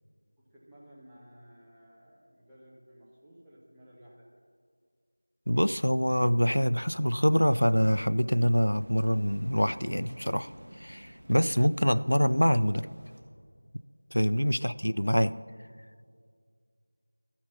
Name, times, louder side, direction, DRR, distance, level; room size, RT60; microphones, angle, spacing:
voice 1, 0.4-4.3, equal, 5° right, -9 dB, 0.7 m, -55 dB
voice 2, 5.5-10.5 10.8-12.9 14.1-15.4, equal, 90° left, 16 dB, 0.3 m, -25 dB
sound 1, 7.0-13.2, equal, 50° right, 1.2 m, -52 dB
13.0 x 6.0 x 5.7 m, 2.1 s
figure-of-eight pair, 175°, 0 cm